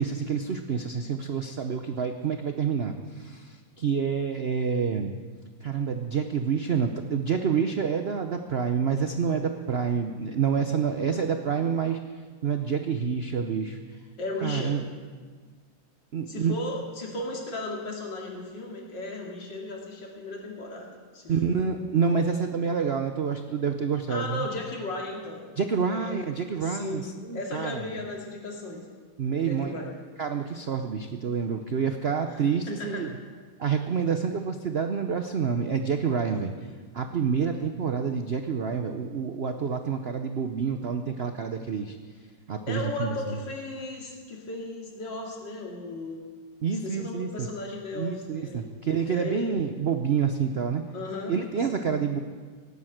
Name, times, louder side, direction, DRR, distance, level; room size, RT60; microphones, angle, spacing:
voice 1, 0.0-5.1 5.6-12.0 12.4-13.8 14.4-14.8 16.1-16.5 21.3-24.5 25.6-27.8 29.2-29.7 30.2-33.1 33.6-36.5 36.9-42.0 42.5-43.4 46.6-47.5 47.9-50.8 51.3-52.2, right 6 dB, 60° right, 6 dB, 0.6 m, -28 dB
voice 2, 14.2-14.7 16.3-21.6 24.1-25.5 25.9-26.2 26.5-27.1 27.3-28.9 29.4-30.0 32.3-32.4 32.7-33.2 36.3-36.6 42.7-46.2 46.8-48.7 49.1-49.6 50.9-51.3 51.7-51.9, left 2 dB, 70° left, 0 dB, 3.1 m, -36 dB
18.0 x 9.4 x 7.9 m, 1.5 s
omnidirectional pair, 2.0 m